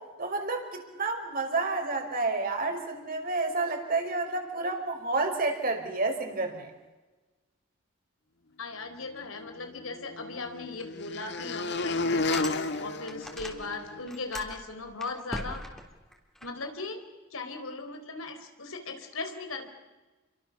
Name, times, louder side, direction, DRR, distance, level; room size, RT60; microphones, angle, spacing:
voice 1, 0.2-6.7, right 3 dB, 45° right, 4 dB, 5.1 m, -30 dB
voice 2, 8.6-15.6 16.4-17.0 17.3-19.7, left 3 dB, 80° left, 7 dB, 4.1 m, -38 dB
sound 1, 9.4-14.0, left 3 dB, 55° left, 1.6 m, -32 dB
sound 2, 10.8-10.9 11.4-11.5 11.9-13.8 14.0-16.5, equal, ahead, 3.6 m, -41 dB
29.5 x 24.0 x 7.1 m, 1.2 s
head